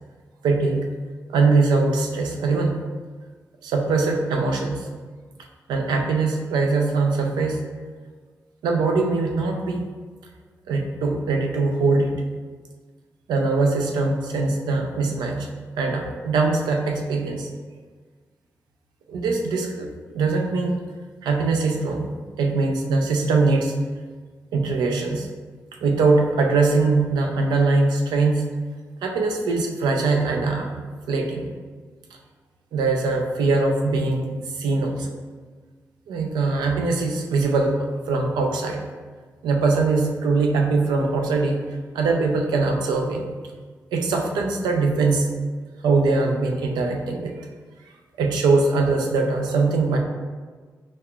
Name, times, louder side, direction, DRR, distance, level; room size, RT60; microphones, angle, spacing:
voice 1, 0.4-0.9 1.3-2.8 3.6-4.9 5.7-7.6 8.6-9.8 10.7-12.1 13.3-15.5 15.8-17.5 19.1-19.9 20.1-20.7 21.2-23.7 24.5-25.3 25.8-28.4 29.0-31.5 32.7-35.1 36.1-37.8 38.1-38.8 39.4-41.6 41.9-43.4 43.9-45.3 45.8-47.3 48.2-50.0, right 3 dB, 85° right, 2 dB, 0.4 m, -22 dB
5.2 x 2.3 x 2.2 m, 1.5 s
supercardioid pair, 45°, 7 cm